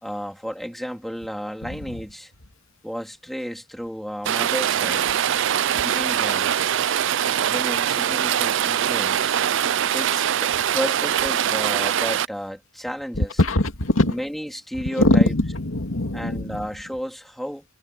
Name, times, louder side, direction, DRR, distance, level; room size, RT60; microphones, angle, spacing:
voice 1, 0.0-2.3 2.8-5.1 5.8-6.6 7.4-9.3 9.9-13.4 14.0-15.3 16.1-17.6, equal, ahead, 3.5 m, -32 dB
Rain, 4.3-12.3, right 10 dB, 65° right, 0.4 m, -22 dB
voice 2, 13.2-14.2 14.9-16.7, left 1 dB, 85° left, 2.4 m, -21 dB
head